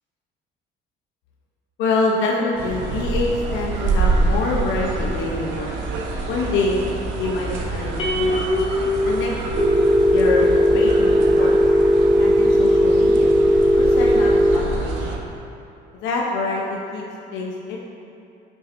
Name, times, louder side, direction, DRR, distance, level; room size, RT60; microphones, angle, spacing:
voice 1, 1.8-5.7 6.3-8.5 9.0-9.3 10.1-11.5 12.2-13.3 13.8-15.2 16.0-17.0 17.3-17.8, left 3 dB, 90° left, -2 dB, 0.9 m, -25 dB
sound 1, 2.6-15.2, right 3 dB, 85° right, 0.9 m, -26 dB
sound 2, 8.0-10.5, left 1 dB, 30° left, 1.2 m, -24 dB
Telephone, 9.6-14.6, equal, 10° right, 0.5 m, -16 dB
9.3 x 7.4 x 2.7 m, 2.6 s
cardioid pair, 110°, 19 cm